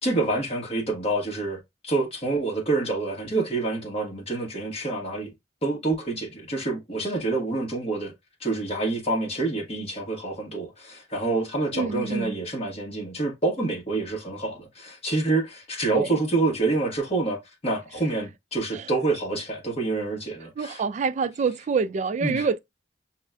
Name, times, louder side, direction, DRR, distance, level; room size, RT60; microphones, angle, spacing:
voice 1, 0.0-5.3 5.6-8.1 8.4-20.8 22.2-22.5, right 3 dB, 35° left, 1.3 m, -27 dB
voice 2, 11.7-12.3 15.9-16.1 18.7-18.9 20.6-22.6, right 5 dB, 40° right, 0.3 m, -26 dB
6.2 x 2.2 x 2.4 m
head